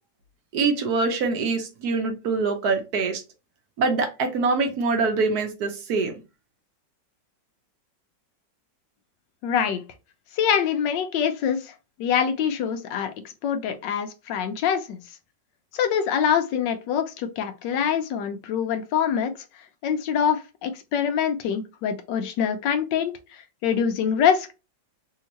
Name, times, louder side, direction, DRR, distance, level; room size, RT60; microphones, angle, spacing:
voice 1, 0.5-3.2 3.8-6.1, right 4 dB, 65° right, 1.2 m, -24 dB
voice 2, 9.4-9.8 10.4-11.7 12.0-13.1 13.4-15.0 15.7-19.3 19.8-24.5, left 8 dB, 80° left, 1.3 m, -25 dB
3.5 x 2.8 x 2.9 m
omnidirectional pair, 2.0 m